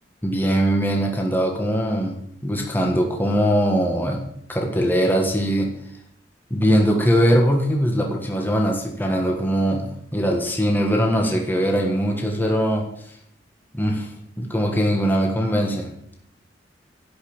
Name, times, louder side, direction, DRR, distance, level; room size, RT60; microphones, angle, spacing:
voice 1, 0.2-2.2 2.4-4.2 4.5-5.7 6.5-12.9 13.7-14.1 14.4-15.9, equal, 10° left, 1 dB, 1.6 m, -21 dB
11.5 x 5.6 x 8.7 m, 0.70 s
head